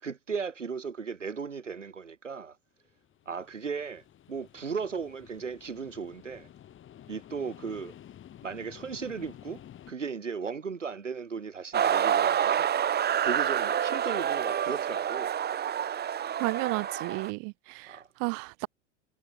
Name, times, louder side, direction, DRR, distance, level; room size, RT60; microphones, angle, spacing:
voice 1, 0.0-2.6 3.3-6.5 7.1-7.9 8.4-9.6 9.9-12.7 13.2-15.3 17.9-18.1, right 5 dB, 85° right, 5.4 m, -36 dB
sound 1, 2.9-9.9, left 11 dB, 35° left, 7.2 m, -51 dB
sound 2, 11.7-17.3, right 9 dB, 25° right, 2.4 m, -28 dB
voice 2, 16.4-18.7, right 40 dB or more, 45° right, 0.6 m, -33 dB
figure-of-eight pair, 85°, 36 cm